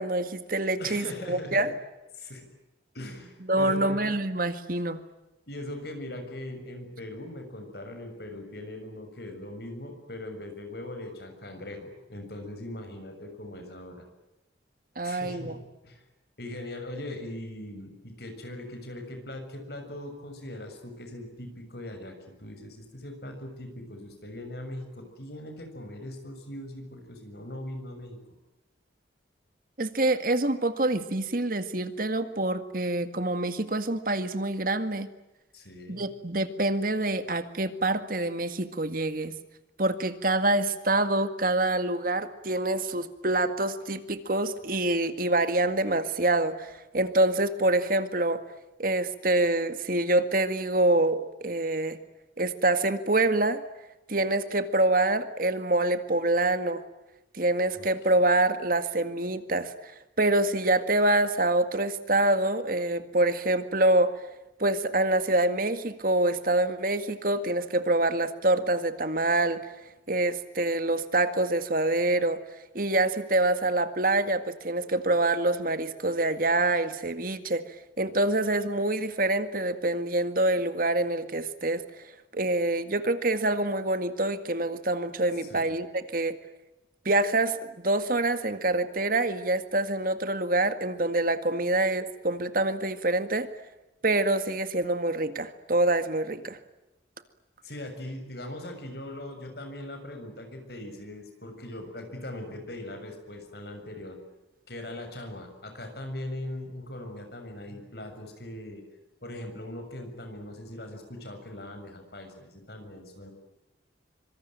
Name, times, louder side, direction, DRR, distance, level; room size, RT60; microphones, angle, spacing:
voice 1, 0.0-1.7 3.5-5.0 15.0-15.5 29.8-35.1 35.9-39.4 39.8-48.4 48.8-52.0 52.4-53.6 54.1-56.8 57.3-59.9 60.2-64.1 64.6-69.6 70.1-72.4 72.7-81.8 82.3-86.4 87.1-93.5 94.0-96.6, right 2 dB, 50° right, 10 dB, 1.9 m, -26 dB
voice 2, 0.8-1.6 2.1-2.5 2.9-4.1 5.5-14.0 15.0-16.0 16.4-28.2 35.5-36.0 57.7-57.9 58.1-58.3 85.4-85.8 97.6-104.2 104.7-108.8 109.2-113.3, left 1 dB, 60° left, 6 dB, 6.9 m, -40 dB
25.5 x 25.0 x 9.1 m, 0.99 s
head